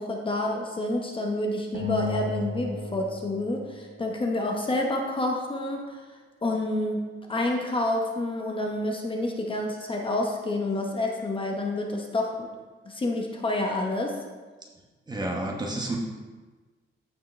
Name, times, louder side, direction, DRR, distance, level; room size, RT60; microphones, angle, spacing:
voice 1, 0.0-6.0 6.4-7.0 7.3-12.5 12.9-14.2, left 2 dB, 25° left, 1 dB, 0.9 m, -28 dB
sound 1, 1.7-4.4, left 3 dB, 85° right, 1.9 m, -34 dB
voice 2, 15.1-16.0, right 2 dB, 20° right, -1 dB, 1.0 m, -30 dB
14.5 x 4.8 x 3.2 m, 1.3 s
wide cardioid pair, 160°, 21 cm